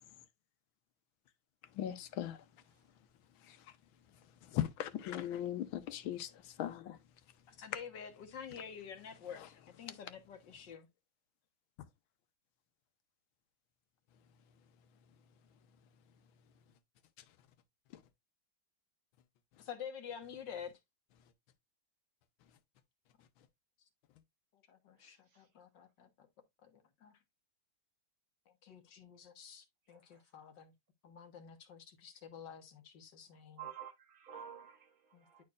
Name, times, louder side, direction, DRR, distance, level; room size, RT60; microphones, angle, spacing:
voice 1, 1.7-2.4 3.4-3.7 4.4-7.0 17.9-18.0, left 11 dB, 85° left, 1.6 m, -39 dB
voice 2, 7.5-10.9 19.6-20.8 23.8-23.9 24.5-26.3 26.6-27.2 28.5-30.7 31.0-33.6 35.1-35.4, left 7 dB, 65° left, 1.8 m, -49 dB
voice 3, 24.9-25.5 29.9-30.3 33.6-35.4, right 9 dB, 75° right, 2.6 m, -51 dB
10.5 x 4.5 x 2.4 m
omnidirectional pair, 2.2 m